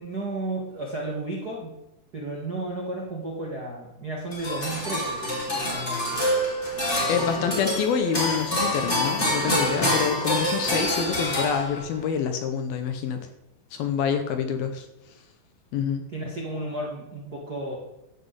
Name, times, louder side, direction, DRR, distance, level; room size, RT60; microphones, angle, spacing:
voice 1, 0.0-1.8 2.1-6.2 7.0-7.5 16.1-17.8, right 2 dB, 85° right, -1 dB, 0.8 m, -33 dB
sound 1, 4.3-12.0, left 1 dB, 15° left, 3.2 m, -26 dB
voice 2, 7.1-13.3 13.7-14.9 15.7-16.0, left 7 dB, 70° left, 7 dB, 2.4 m, -27 dB
12.5 x 6.0 x 8.1 m, 0.90 s
omnidirectional pair, 5.1 m